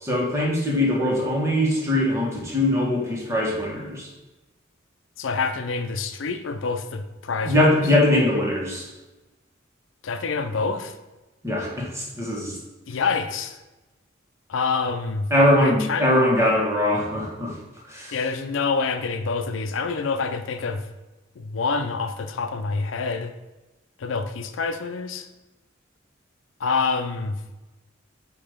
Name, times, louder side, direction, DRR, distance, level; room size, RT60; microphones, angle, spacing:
voice 1, 0.0-4.1 7.4-8.9 11.4-12.6 15.3-17.5 17.9-18.2, left 1 dB, 15° right, -3 dB, 1.5 m, -21 dB
voice 2, 5.2-7.5 10.0-10.9 12.9-13.6 14.5-15.3 15.6-16.1 18.1-20.8 21.4-23.3 24.0-25.3 26.6-27.4, left 4 dB, 80° left, 8 dB, 0.5 m, -27 dB
8.4 x 2.9 x 5.0 m, 1.1 s
head